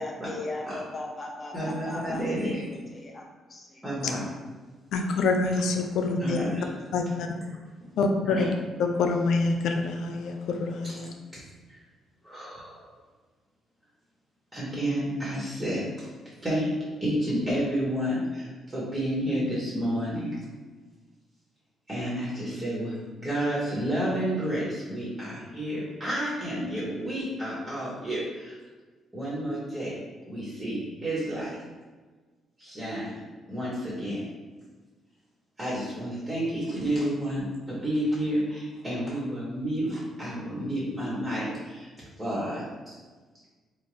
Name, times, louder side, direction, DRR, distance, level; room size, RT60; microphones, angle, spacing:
voice 1, 0.0-3.8, left 2 dB, 30° left, 0 dB, 0.6 m, -38 dB
voice 2, 1.5-2.6 3.8-4.2 6.2-6.7 8.2-8.5 12.2-12.9 14.5-16.1 16.4-16.7 17.0-20.4 21.9-22.9 23.2-28.6 29.1-30.0 30.3-31.5 32.6-33.2 33.5-34.2 35.6-41.9 42.2-43.0, equal, 20° right, -8 dB, 1.4 m, -30 dB
voice 3, 4.9-6.4 6.9-7.0 8.0-8.5 8.8-11.1, left 3 dB, 80° left, 4 dB, 0.3 m, -26 dB
3.7 x 2.5 x 3.1 m, 1.3 s
cardioid pair, 90°, 0 cm